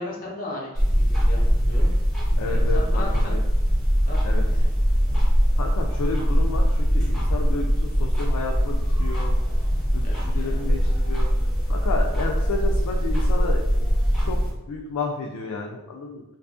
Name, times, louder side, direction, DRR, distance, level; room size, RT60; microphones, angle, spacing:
voice 1, 0.0-1.9 2.5-3.4 4.0-4.7 10.0-10.6, left 2 dB, 40° left, -3 dB, 0.6 m, -36 dB
sound 1, 0.7-14.5, equal, ahead, 0.8 m, -21 dB
voice 2, 2.4-3.4 4.2-4.4 5.6-9.3 9.9-11.3 11.7-13.6 14.2-14.4 14.7-16.2, left 3 dB, 85° left, 1 dB, 0.3 m, -31 dB
2.5 x 2.4 x 2.4 m, 1.0 s
head